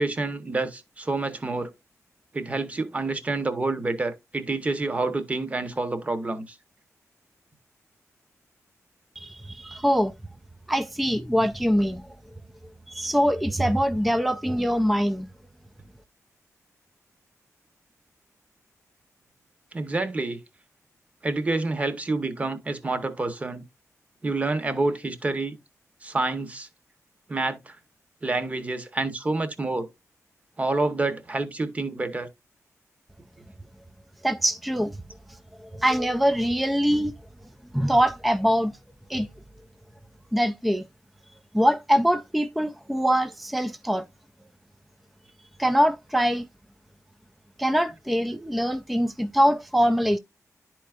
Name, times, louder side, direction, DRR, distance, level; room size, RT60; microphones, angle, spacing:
voice 1, 0.0-1.7 2.3-6.6 19.7-20.4 21.2-23.6 24.2-25.6 26.0-26.7 27.3-27.8 28.2-29.9 30.6-32.3, right 3 dB, 25° right, 0.8 m, -28 dB
voice 2, 9.2-10.1 10.7-12.2 12.9-15.3 34.2-35.0 35.6-37.1 37.7-38.8 39.1-39.3 40.3-40.8 41.5-44.0 45.6-46.5 47.6-50.2, equal, ahead, 0.3 m, -23 dB
11.0 x 4.5 x 2.4 m
wide cardioid pair, 150°, 6 cm